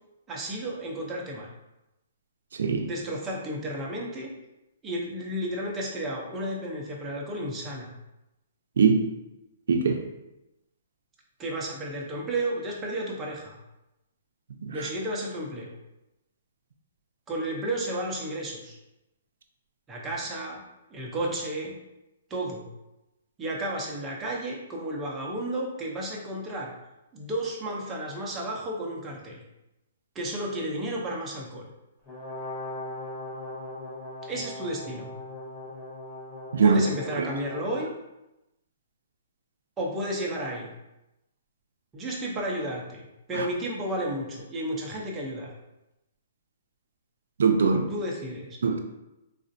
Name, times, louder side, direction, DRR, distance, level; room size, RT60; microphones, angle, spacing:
voice 1, 0.3-1.5 2.8-4.3 4.8-7.9 11.4-13.6 14.7-15.7 17.3-18.8 19.9-20.6 20.9-21.7 22.3-22.6 23.4-26.7 27.1-29.4 30.1-31.6 34.2-35.1 36.6-37.9 39.8-40.7 41.9-45.5 47.9-48.6, right 1 dB, 15° right, -3 dB, 0.6 m, -32 dB
voice 2, 9.7-10.0 14.6-14.8 36.5-36.8 37.2-37.3 43.3-43.5 47.4-47.9 48.6-48.8, right 5 dB, 75° right, 5 dB, 0.4 m, -21 dB
Brass instrument, 32.1-37.9, left 1 dB, 10° left, 0.9 m, -39 dB
4.1 x 2.5 x 2.6 m, 0.94 s
hypercardioid pair, 160°, 0 cm